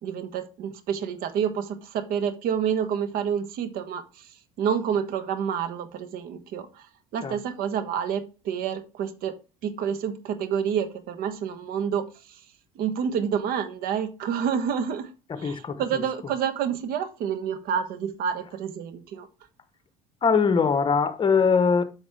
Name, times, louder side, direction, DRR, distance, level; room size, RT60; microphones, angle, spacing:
voice 1, 0.0-4.3 4.6-6.9 7.1-9.4 9.6-12.4 12.7-19.3, right 8 dB, 65° right, 1.3 m, -28 dB
voice 2, 15.3-15.8 20.2-21.8, left 5 dB, 30° left, 1.2 m, -21 dB
8.1 x 6.3 x 3.5 m
supercardioid pair, 90°, 16 cm